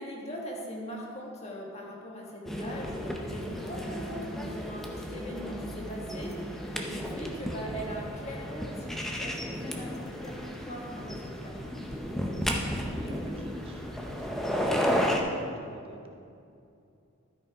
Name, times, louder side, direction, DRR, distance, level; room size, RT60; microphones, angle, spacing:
voice 1, 0.0-11.6, equal, 30° left, -2 dB, 1.5 m, -41 dB
sound 1, 2.4-15.2, equal, ahead, 0.6 m, -33 dB
voice 2, 12.9-16.1, right 1 dB, 25° right, 1 dB, 0.9 m, -47 dB
13.0 x 5.9 x 4.8 m, 2.5 s
head